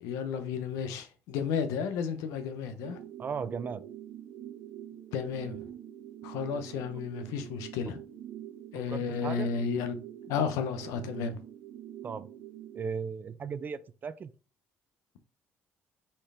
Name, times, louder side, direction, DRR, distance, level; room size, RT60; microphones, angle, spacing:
voice 1, 0.0-3.0 5.1-5.6 6.2-8.0 8.7-11.4, left 6 dB, 85° left, 0.7 m, -33 dB
sound 1, 2.8-12.8, right 11 dB, 75° right, 0.8 m, -45 dB
voice 2, 3.2-3.8 8.9-9.5 12.0-12.3 12.7-14.3, right 6 dB, 35° right, 0.4 m, -36 dB
4.3 x 3.2 x 3.6 m
cardioid pair, 95°, 5 cm